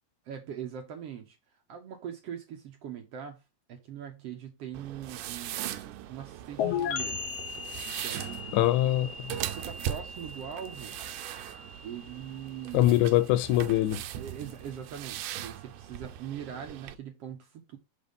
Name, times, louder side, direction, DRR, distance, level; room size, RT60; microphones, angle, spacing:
voice 1, 0.3-1.4 1.7-3.4 3.7-7.2 7.8-8.9 9.4-10.9 11.8-13.2 14.1-17.8, right 9 dB, 65° right, 1.8 m, -42 dB
sound 1, 4.7-17.0, right 12 dB, 85° right, 2.2 m, -40 dB
sound 2, 6.6-14.1, left 7 dB, 60° left, 2.0 m, -38 dB
voice 2, 8.5-9.4 12.7-14.0, left 15 dB, 80° left, 1.9 m, -23 dB
6.5 x 3.5 x 5.3 m
omnidirectional pair, 3.6 m